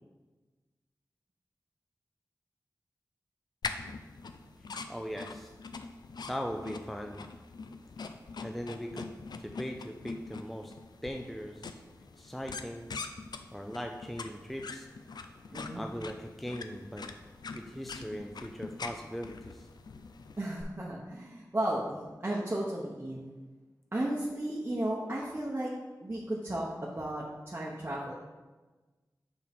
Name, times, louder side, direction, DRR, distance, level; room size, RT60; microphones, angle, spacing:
sound 1, 3.6-20.6, left 4 dB, 75° left, 0.4 m, -44 dB
voice 1, 4.9-5.5 6.3-7.2 8.4-9.1 9.4-10.7 11.0-11.8 12.2-12.9 13.5-14.9 15.7-17.1 17.5-19.7, equal, ahead, 3 dB, 0.4 m, -39 dB
voice 2, 15.5-15.8 20.4-22.0 22.2-23.3 23.9-25.7 26.0-28.2, right 1 dB, 30° right, -5 dB, 0.8 m, -34 dB
6.0 x 4.6 x 3.5 m, 1.2 s
wide cardioid pair, 55°, 7 cm